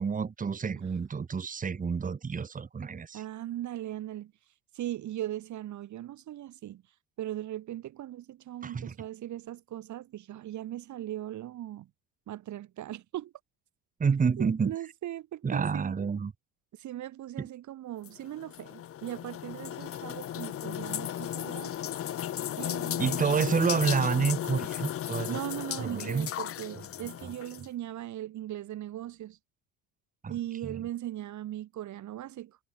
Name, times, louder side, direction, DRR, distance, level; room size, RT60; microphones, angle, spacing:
voice 1, 0.0-3.2 8.6-8.9 14.0-14.8 15.4-16.3 17.4-17.5 23.0-25.4 25.8-26.3 27.2-27.3 30.2-30.8, right 5 dB, 20° right, 1.9 m, -29 dB
voice 2, 3.1-4.3 4.7-6.8 7.2-11.9 12.3-13.3 14.4-16.0 16.7-21.7 22.6-23.4 25.3-29.4 30.3-32.6, right 13 dB, 45° right, 1.8 m, -39 dB
sound 1, 18.0-27.7, left 11 dB, 35° left, 1.0 m, -35 dB
cardioid pair, 130°, 40 cm